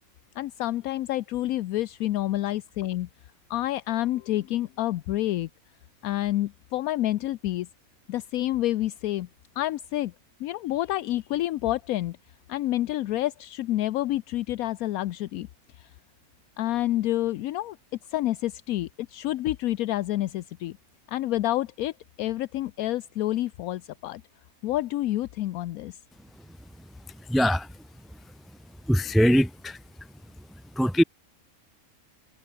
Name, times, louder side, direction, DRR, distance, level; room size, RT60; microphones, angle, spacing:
voice 1, 0.4-3.1 3.5-5.5 6.0-7.7 8.1-9.3 9.6-10.1 10.4-12.2 12.5-15.5 15.7-15.9 16.6-17.8 18.1-20.8 21.1-21.9 22.2-24.2 24.6-26.0, left 14 dB, 75° left, 1.0 m, -28 dB
voice 2, 27.3-27.7 28.9-29.8 30.8-31.0, equal, ahead, 0.6 m, -21 dB
omnidirectional pair, 1.6 m